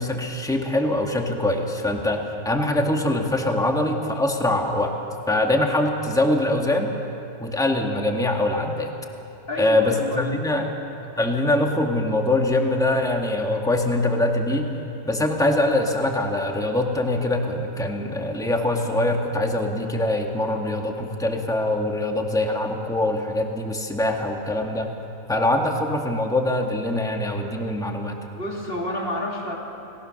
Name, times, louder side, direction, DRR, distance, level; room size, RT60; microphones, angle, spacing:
voice 1, 0.0-4.9 5.3-6.9 7.4-8.9 9.6-10.7 11.2-14.7 15.1-24.9 25.3-28.2, left 1 dB, ahead, 2 dB, 1.7 m, -23 dB
voice 2, 9.5-10.7 28.3-29.6, left 1 dB, 40° left, -1 dB, 3.2 m, -30 dB
30.0 x 18.5 x 6.5 m, 2.9 s
omnidirectional pair, 1.5 m